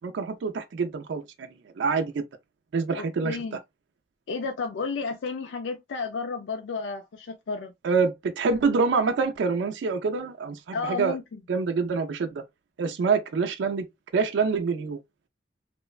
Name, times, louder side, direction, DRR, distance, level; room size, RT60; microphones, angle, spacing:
voice 1, 0.0-2.2 2.7-3.4 7.8-11.2 11.5-12.4 12.8-13.9 14.1-15.0, right 5 dB, 80° right, 0.4 m, -26 dB
voice 2, 3.0-3.6 4.3-7.7 10.7-11.2, left 4 dB, 85° left, 0.4 m, -32 dB
3.0 x 2.1 x 2.3 m
head